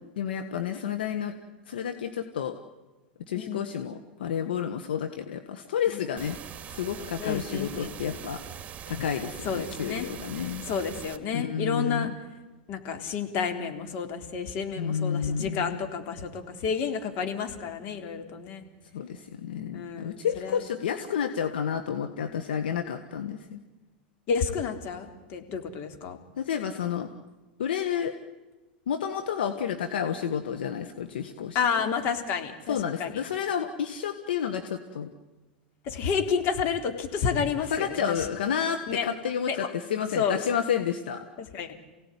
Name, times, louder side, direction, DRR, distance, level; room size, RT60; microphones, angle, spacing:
voice 1, 0.2-1.3 1.7-2.5 3.3-6.4 6.7-8.4 8.9-10.7 11.3-12.1 14.8-15.8 18.9-23.6 26.4-27.1 27.6-28.1 28.9-31.6 32.7-35.1 37.7-41.2, left 8 dB, 75° left, 6 dB, 1.6 m, -30 dB
voice 2, 3.4-3.7 5.9-6.1 7.2-8.0 9.4-10.1 10.7-12.1 12.7-18.6 19.7-20.6 24.3-26.2 31.5-33.2 35.8-38.3 38.9-39.1 39.5-39.7 40.2-40.4 41.4-41.7, left 6 dB, 50° left, 5 dB, 3.7 m, -30 dB
sound 1, 6.2-11.2, right 9 dB, 30° right, 2.3 m, -42 dB
28.5 x 17.5 x 10.0 m, 1.2 s
hypercardioid pair, 100°, 5 cm